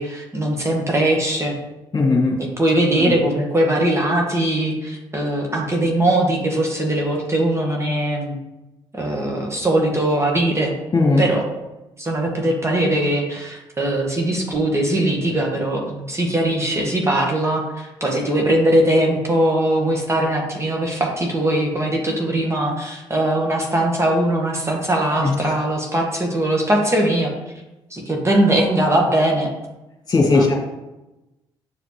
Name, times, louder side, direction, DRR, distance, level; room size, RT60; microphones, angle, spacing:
voice 1, 0.0-1.5 2.6-8.4 8.9-10.7 11.2-11.4 12.0-27.3 27.9-29.5 30.2-30.5, right 1 dB, 20° right, 0 dB, 1.8 m, -20 dB
voice 2, 1.9-2.4 10.9-11.2 25.2-25.4 30.1-30.5, left 3 dB, 35° left, -1 dB, 2.3 m, -17 dB
9.0 x 5.0 x 3.3 m, 1.0 s
hypercardioid pair, 50°, 12 cm